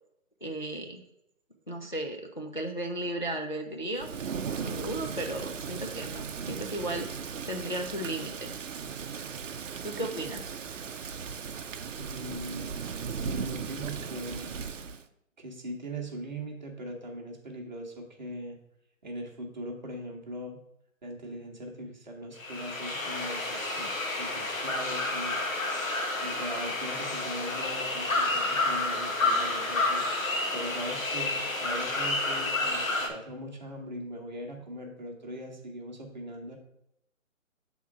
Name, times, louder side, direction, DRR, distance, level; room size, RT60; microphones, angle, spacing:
voice 1, 0.4-1.0 1.7-4.1 4.5-7.1 7.5-8.6 9.8-10.5, right 1 dB, 40° left, 2 dB, 0.4 m, -35 dB
Thunder / Rain, 4.0-15.0, right 6 dB, 65° right, 0.6 m, -37 dB
voice 2, 12.0-12.7 13.1-14.5 15.4-18.6 19.0-20.6 21.0-25.4 26.2-30.0 30.5-36.6, right 1 dB, 35° right, 0 dB, 1.0 m, -40 dB
sound 1, 22.4-33.1, left 2 dB, 75° left, 1.3 m, -30 dB
5.7 x 3.7 x 5.8 m, 0.79 s
hypercardioid pair, 175°, 41 cm